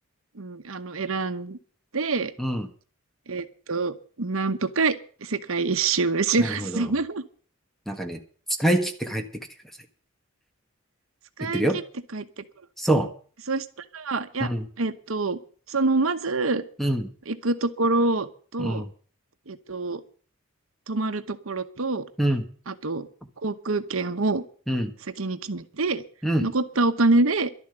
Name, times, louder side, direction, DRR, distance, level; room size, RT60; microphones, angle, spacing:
voice 1, 0.4-1.6 1.9-2.3 3.3-5.0 5.2-7.2 11.4-11.8 12.1-12.3 13.5-13.7 13.9-14.5 14.8-15.4 15.7-16.6 17.3-18.8 19.5-20.0 20.9-22.0 22.7-23.1 23.4-24.4 25.2-26.0 26.4-27.5, right 3 dB, 80° right, 1.0 m, -26 dB
voice 2, 2.4-2.7 6.4-6.8 7.9-8.2 8.6-9.2 11.4-11.8 12.8-13.1 14.4-14.7 16.8-17.1 18.6-18.9 22.2-22.5 24.7-24.9 26.2-26.5, right 1 dB, ahead, 1.5 m, -25 dB
12.0 x 7.3 x 10.0 m
head